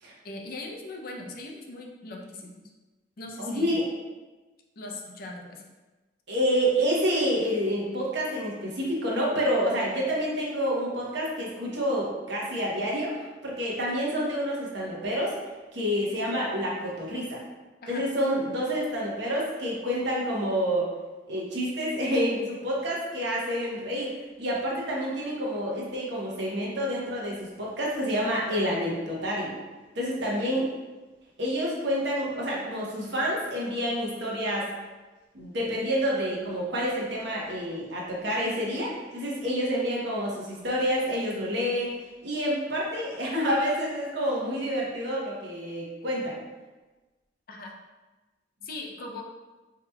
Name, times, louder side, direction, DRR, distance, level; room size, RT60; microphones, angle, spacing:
voice 1, 0.2-2.6 3.2-3.8 4.8-5.7 17.8-18.0 30.3-30.5 47.5-47.7 48.6-49.2, left 2 dB, 50° left, 1 dB, 0.5 m, -40 dB
voice 2, 3.4-3.8 6.3-15.3 15.7-17.4 17.9-20.9 21.3-29.5 29.9-30.7 31.4-34.7 35.3-41.9 42.2-46.4, equal, 60° right, -4 dB, 0.9 m, -28 dB
4.8 x 2.8 x 2.3 m, 1.2 s
head